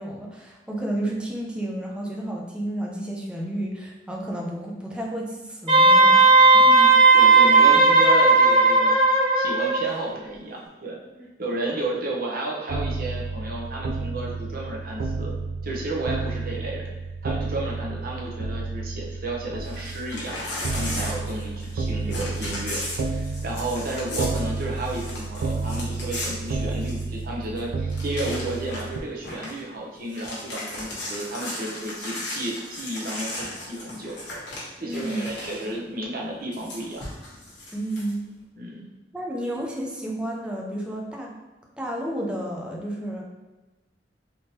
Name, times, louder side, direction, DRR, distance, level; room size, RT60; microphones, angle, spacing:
voice 1, 0.0-6.3 6.6-6.7 11.2-11.3 34.8-35.2 37.7-38.3 39.1-41.3 41.8-43.2, right 1 dB, 5° right, -2 dB, 0.5 m, -31 dB
Wind instrument woodwind instrument, 5.7-9.9, right 3 dB, 25° right, 1.4 m, -15 dB
voice 2, 6.5-9.0 9.3-11.0 11.4-15.3 15.6-16.9 17.2-20.4 20.7-34.2 34.8-37.1 38.5-38.9, right 1 dB, 55° right, -3 dB, 0.8 m, -32 dB
sound 1, 12.7-29.0, right 3 dB, 85° right, 0.3 m, -31 dB
Crumpling crinkling / Tearing, 19.6-21.8 22.1-27.2 27.6-27.7 27.9-28.9 29.2-29.6 30.0-35.7 36.5-38.1, left 1 dB, 90° left, 1.1 m, -36 dB
3.5 x 2.9 x 2.8 m, 1.1 s
head